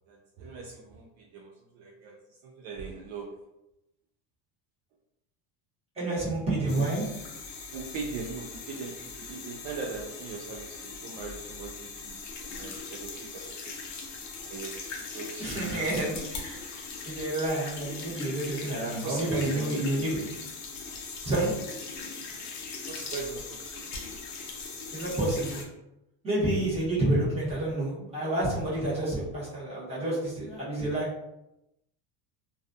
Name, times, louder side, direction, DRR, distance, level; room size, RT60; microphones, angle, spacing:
voice 1, 0.1-2.2 2.4-3.4 7.7-13.7 14.5-14.8 15.1-15.5 19.0-19.6 22.9-23.8, right 4 dB, 60° right, 0 dB, 0.5 m, -40 dB
voice 2, 6.0-7.0 15.4-16.7 17.0-20.2 21.2-21.5 24.9-25.6 26.2-31.1, right 1 dB, 15° right, -8 dB, 1.0 m, -29 dB
sound 1, 6.7-25.6, left 4 dB, 40° left, 0.5 m, -40 dB
2.4 x 2.2 x 2.5 m, 0.88 s
cardioid pair, 145°, 44 cm